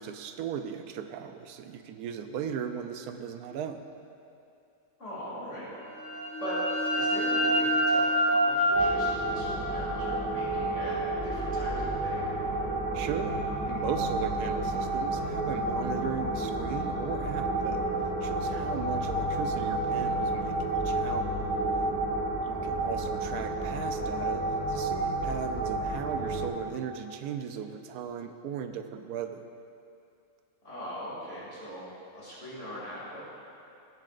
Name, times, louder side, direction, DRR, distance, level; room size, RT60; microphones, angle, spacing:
voice 1, 0.0-3.9 12.9-21.3 22.4-29.5, right 8 dB, 85° right, 8 dB, 1.1 m, -37 dB
voice 2, 5.0-5.7 6.4-6.6 6.9-11.0 11.2-12.3 18.3-18.8 30.6-33.2, equal, 50° left, -9 dB, 3.1 m, -41 dB
sound 1, 5.8-11.3, equal, 10° right, 2.2 m, -28 dB
sound 2, 8.7-26.5, right 2 dB, 5° left, 0.9 m, -30 dB
17.5 x 7.6 x 2.5 m, 2.6 s
omnidirectional pair, 1.6 m